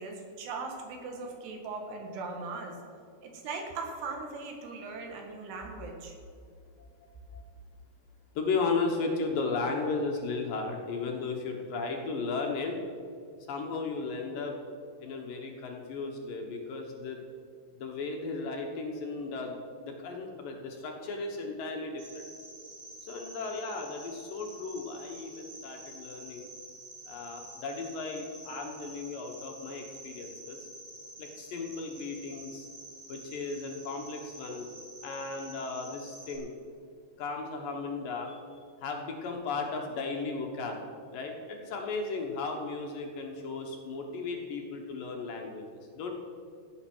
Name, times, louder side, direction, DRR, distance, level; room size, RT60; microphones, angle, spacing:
voice 1, 0.0-2.8 3.2-6.2, right 3 dB, 80° right, 2 dB, 3.8 m, -39 dB
voice 2, 8.4-12.8 13.5-14.6 15.0-17.2 17.8-22.3 23.0-26.5 27.1-30.7 31.2-32.7 33.1-34.7 35.0-36.5 37.2-38.4 38.8-40.8 41.1-46.1, left 4 dB, 65° left, 2 dB, 2.6 m, -35 dB
Cricket, 22.0-36.4, right 1 dB, 45° right, 4.0 m, -48 dB
16.0 x 8.0 x 6.2 m, 2.3 s
omnidirectional pair, 4.7 m